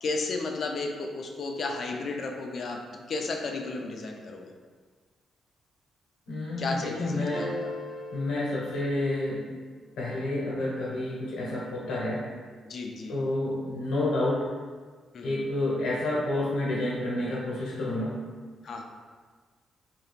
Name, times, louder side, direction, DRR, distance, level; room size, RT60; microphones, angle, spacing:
voice 1, 0.0-2.8 3.1-4.5 6.6-7.7 12.7-13.1 15.1-15.4 18.6-18.8, left 3 dB, 50° left, 2 dB, 0.4 m, -33 dB
voice 2, 6.3-7.5 8.1-9.4 10.0-12.2 13.1-14.5 15.2-18.2, left 2 dB, 85° left, -5 dB, 0.9 m, -29 dB
sound 1, 7.3-9.6, left 1 dB, 15° right, 0.6 m, -38 dB
2.8 x 2.3 x 3.3 m, 1.5 s
cardioid pair, 115°, 0 cm